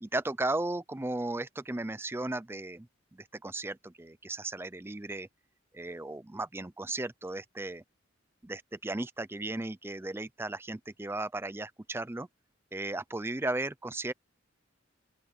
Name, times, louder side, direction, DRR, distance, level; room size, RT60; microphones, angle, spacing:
voice 1, 0.0-5.3 5.7-7.8 8.4-12.3 12.7-14.1, right 2 dB, 10° right, 0.5 m, -35 dB
open air
head